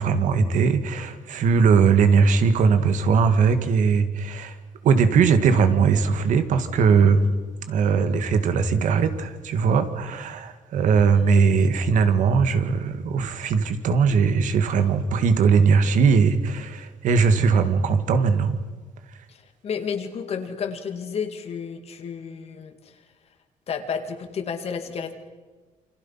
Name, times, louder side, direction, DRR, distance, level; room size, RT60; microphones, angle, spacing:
voice 1, 0.0-4.6 4.8-7.2 7.7-18.6, right 5 dB, 70° right, 9 dB, 2.0 m, -20 dB
voice 2, 19.6-22.7 23.7-25.1, left 6 dB, 50° left, 7 dB, 2.5 m, -31 dB
28.5 x 26.5 x 5.8 m, 1.3 s
cardioid pair, 140°, 13 cm